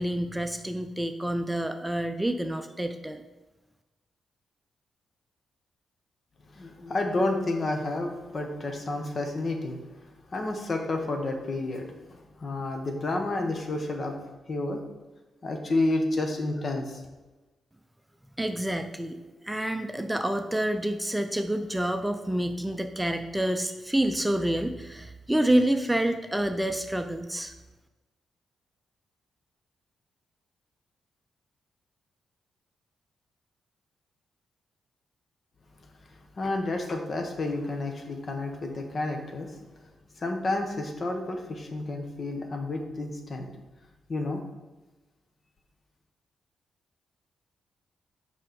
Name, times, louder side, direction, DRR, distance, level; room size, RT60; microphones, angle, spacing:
voice 1, 0.0-3.2 18.4-19.2 19.4-27.5, right 1 dB, 10° right, 7 dB, 0.6 m, -28 dB
voice 2, 6.5-9.8 10.3-14.2 14.5-14.8 15.4-17.0 36.4-39.5 40.2-43.5 44.1-44.4, left 2 dB, 50° left, 4 dB, 1.3 m, -30 dB
5.7 x 4.8 x 5.1 m, 1.1 s
hypercardioid pair, 40°, 0 cm